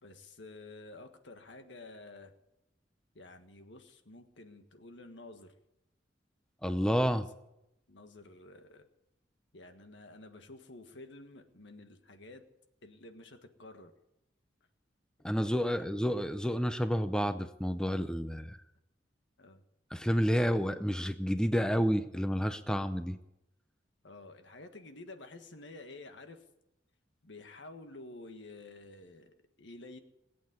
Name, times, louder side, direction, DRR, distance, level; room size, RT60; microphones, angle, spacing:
voice 1, 0.0-2.3 3.1-5.5 7.1-7.3 7.9-8.9 9.5-12.4 12.8-13.9 15.5-15.8 19.4-19.6 24.0-26.4 27.2-30.0, left 2 dB, 75° left, 7 dB, 1.6 m, -51 dB
voice 2, 6.6-7.3 15.2-18.6 19.9-23.2, equal, 5° left, 10 dB, 0.6 m, -30 dB
20.0 x 8.7 x 8.2 m, 0.87 s
head